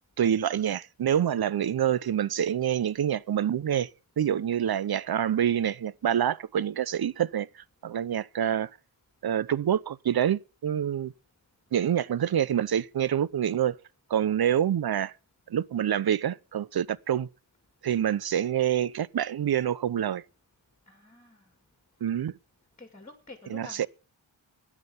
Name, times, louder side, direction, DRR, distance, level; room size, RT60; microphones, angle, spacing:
voice 1, 0.2-3.9 4.2-7.5 7.8-8.7 9.2-11.1 11.7-13.8 14.1-15.1 15.5-17.3 17.8-20.2 22.0-22.3 23.5-23.9, right 9 dB, 55° right, 0.6 m, -26 dB
voice 2, 20.9-21.5 22.8-23.9, left 3 dB, 15° left, 2.4 m, -48 dB
13.5 x 9.8 x 5.7 m
wide cardioid pair, 100°, 47 cm